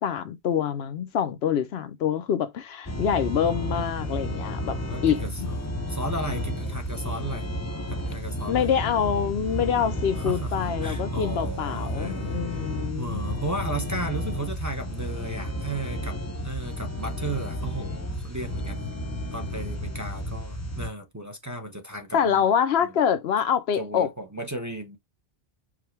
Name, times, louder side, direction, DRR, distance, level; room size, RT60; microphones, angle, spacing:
voice 1, 0.0-4.8 5.0-5.5 8.5-13.2 22.1-24.1, left 8 dB, 70° left, 0.8 m, -25 dB
sound 1, 2.9-20.9, equal, 20° left, 0.6 m, -32 dB
voice 2, 4.9-7.5 7.9-8.7 10.2-12.4 12.9-18.8 19.3-22.4 22.8-22.9 23.8-25.0, right 2 dB, 20° right, 0.7 m, -35 dB
4.9 x 2.2 x 4.5 m
omnidirectional pair, 1.1 m